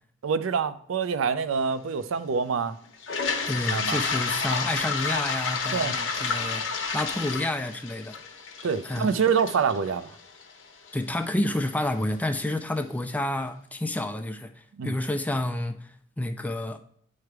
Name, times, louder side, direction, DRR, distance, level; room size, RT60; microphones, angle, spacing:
voice 1, 0.2-2.8 3.7-4.0 5.7-5.9 8.6-10.1 14.8-15.0, right 6 dB, 85° right, 0.4 m, -26 dB
Toilet flush, 3.0-10.9, left 5 dB, 70° left, 1.0 m, -30 dB
voice 2, 3.5-8.2 8.8-9.2 10.9-16.8, left 1 dB, 10° left, 0.3 m, -30 dB
9.7 x 3.3 x 4.6 m
head